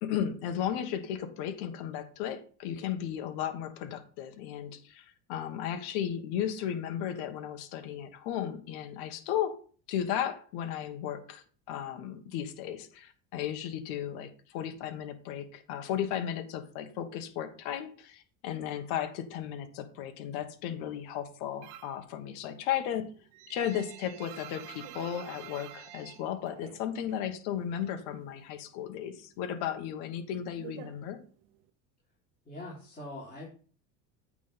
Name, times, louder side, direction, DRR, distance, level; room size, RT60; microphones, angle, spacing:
voice 1, 0.0-9.6 9.9-23.1 23.5-31.2, left 10 dB, 70° left, 8 dB, 1.4 m, -35 dB
sound 1, 21.6-22.1 22.4-27.3 27.5-28.6 28.9-31.7, right 13 dB, 75° right, 0.9 m, -48 dB
voice 2, 32.5-33.5, left 1 dB, 20° left, -6 dB, 3.5 m, -42 dB
8.6 x 3.7 x 5.6 m, 0.42 s
supercardioid pair, 115°, 40 cm